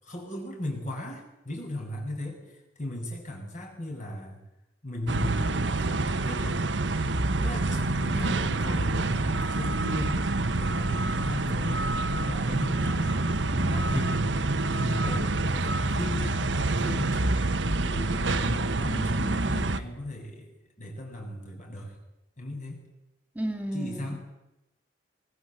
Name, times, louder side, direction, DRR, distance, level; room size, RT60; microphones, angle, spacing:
voice 1, 0.0-2.4 2.8-4.4 4.8-6.6 7.3-11.8 12.1-13.2 13.6-14.4 14.7-17.3 17.8-20.5 20.8-22.0 22.4-22.8 23.7-24.2, left 1 dB, 45° left, 1 dB, 7.3 m, -36 dB
sound 1, 5.1-19.8, right 2 dB, 90° right, 1.3 m, -27 dB
voice 2, 7.7-8.8 13.5-14.2 18.9-19.8 23.3-24.2, right 1 dB, 10° right, 4 dB, 2.8 m, -36 dB
23.5 x 22.0 x 8.0 m, 0.92 s
head